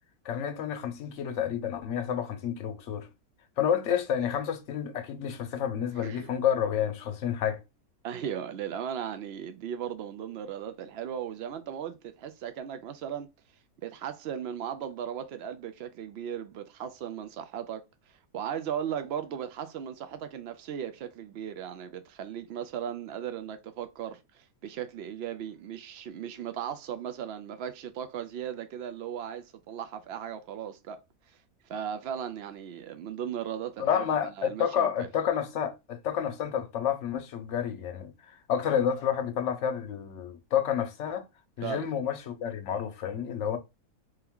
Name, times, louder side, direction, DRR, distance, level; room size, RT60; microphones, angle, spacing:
voice 1, 0.2-3.1 3.6-7.6 33.8-41.2 41.6-43.6, left 8 dB, 60° left, 0.9 m, -30 dB
voice 2, 6.0-6.3 8.0-13.3 13.8-17.8 18.3-31.0 31.7-34.9 41.6-41.9, right 9 dB, 75° right, 0.6 m, -37 dB
3.5 x 2.9 x 3.5 m
omnidirectional pair, 1.6 m